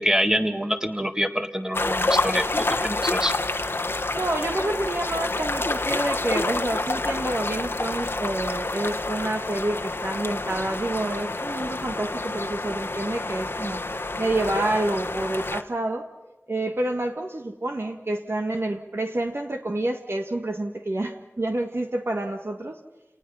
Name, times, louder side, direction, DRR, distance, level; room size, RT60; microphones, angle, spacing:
voice 1, 0.0-2.5 2.8-3.3, equal, 15° right, 7 dB, 1.9 m, -25 dB
sound 1, 1.7-15.6, left 2 dB, 55° left, 1.3 m, -28 dB
voice 2, 4.1-16.0 16.5-22.8, right 2 dB, 55° right, 4 dB, 1.7 m, -28 dB
29.0 x 19.0 x 5.6 m, 1.1 s
wide cardioid pair, 60°, 5 cm